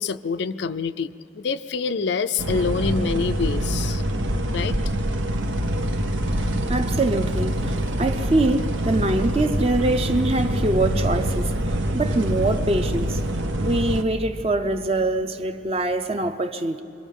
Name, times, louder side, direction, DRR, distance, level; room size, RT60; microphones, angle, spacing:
voice 1, 0.0-4.0 4.5-4.8, left 5 dB, 65° left, 0.4 m, -26 dB
sound 1, 2.4-14.0, right 1 dB, 90° right, 1.1 m, -25 dB
voice 2, 6.7-11.5 11.9-13.2 13.6-16.8, right 2 dB, 30° right, 0.7 m, -24 dB
25.5 x 22.5 x 5.4 m
head